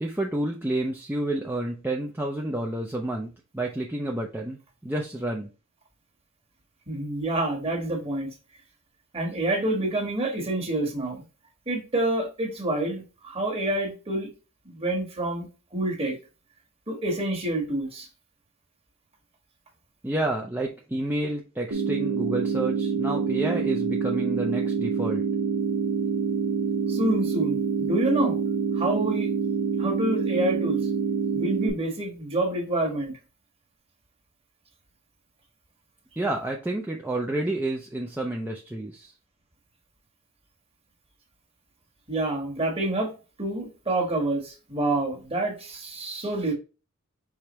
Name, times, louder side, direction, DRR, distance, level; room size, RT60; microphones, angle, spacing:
voice 1, 0.0-5.5 20.0-25.2 36.2-39.1, right 1 dB, 10° right, 0.4 m, -30 dB
voice 2, 6.9-8.3 9.1-11.2 11.7-14.3 14.6-15.5 15.7-16.2 16.9-18.1 26.9-28.4 28.7-29.3 29.8-30.8 31.3-33.1 42.1-43.1 43.4-46.5, right 2 dB, 25° right, 1.4 m, -27 dB
sound 1, 21.7-31.7, right 5 dB, 85° right, 1.3 m, -26 dB
4.9 x 3.4 x 3.0 m
head